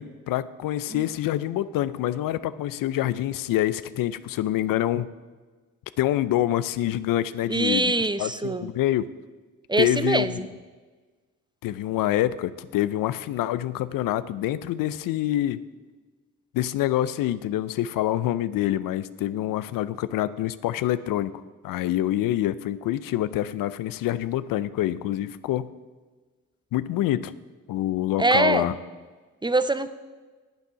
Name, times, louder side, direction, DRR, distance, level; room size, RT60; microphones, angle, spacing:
voice 1, 0.0-5.1 6.0-7.9 8.2-9.1 9.8-10.5 11.6-15.6 16.5-21.3 21.6-25.7 26.7-27.3 27.7-28.7, left 13 dB, 85° left, 15 dB, 0.5 m, -26 dB
voice 2, 7.5-8.7 9.7-10.5 28.2-28.7 29.4-29.9, right 2 dB, 15° right, 13 dB, 0.5 m, -23 dB
8.9 x 8.2 x 5.7 m, 1.4 s
cardioid pair, 65°, 33 cm